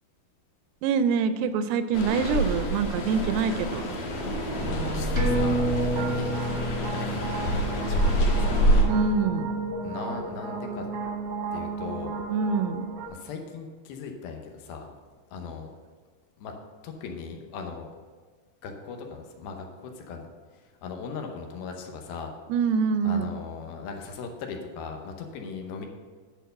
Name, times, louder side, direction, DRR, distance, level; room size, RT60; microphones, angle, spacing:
voice 1, 0.8-3.8 8.9-9.5 12.3-12.9 22.5-23.3, right 5 dB, 85° right, 11 dB, 2.5 m, -25 dB
sound 1, 1.9-8.8, right 1 dB, 60° left, 2.9 m, -26 dB
sound 2, 4.5-13.1, right 3 dB, 70° right, 1.6 m, -34 dB
voice 2, 4.6-8.9 9.8-10.9 11.5-12.2 13.1-14.9 15.3-15.7 16.4-16.5 16.8-17.9 18.6-20.3 20.8-22.3 23.0-25.9, left 5 dB, 80° left, 3 dB, 2.7 m, -38 dB
sound 3, 5.2-10.1 10.5-10.6, equal, 25° right, 1.1 m, -31 dB
10.0 x 4.5 x 6.5 m, 1.5 s
omnidirectional pair, 4.5 m